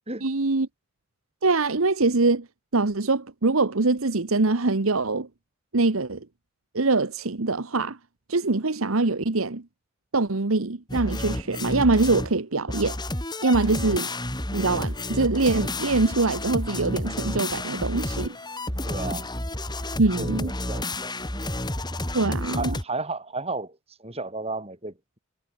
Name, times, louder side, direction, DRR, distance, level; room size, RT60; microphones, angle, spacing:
voice 1, 0.2-0.7 1.4-2.5 2.7-5.3 5.7-6.2 6.7-8.0 8.3-9.6 10.1-13.0 13.4-14.1 14.5-18.4 20.0-20.5 22.1-22.8, right 3 dB, 70° right, 1.2 m, -23 dB
sound 1, 10.9-12.4 12.7-22.8, left 1 dB, 20° left, 6.0 m, -30 dB
voice 2, 18.9-19.3 20.1-21.3 22.5-25.2, right 3 dB, 30° right, 7.3 m, -34 dB
head